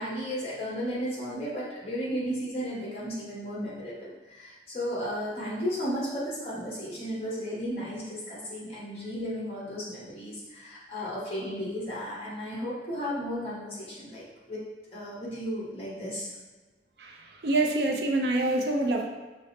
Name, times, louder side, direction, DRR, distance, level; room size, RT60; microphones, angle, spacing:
voice 1, 0.0-16.3, equal, 35° left, -6 dB, 1.3 m, -34 dB
voice 2, 17.0-19.1, right 2 dB, 65° right, 2 dB, 0.5 m, -26 dB
5.1 x 2.0 x 4.2 m, 1.2 s
head